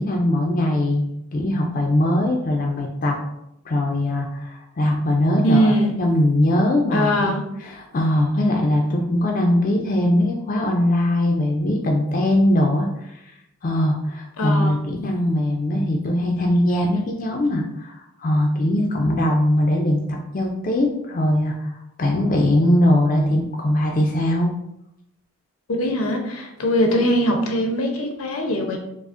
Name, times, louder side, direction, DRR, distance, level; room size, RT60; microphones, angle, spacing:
voice 1, 0.0-3.2 3.7-5.7 6.0-7.3 7.6-13.4 13.6-24.5, left 1 dB, 40° left, 1 dB, 0.4 m, -21 dB
voice 2, 5.4-5.9 6.9-7.4 14.4-14.8 25.8-28.8, equal, 80° left, 3 dB, 0.6 m, -21 dB
4.7 x 2.0 x 2.5 m, 0.81 s
head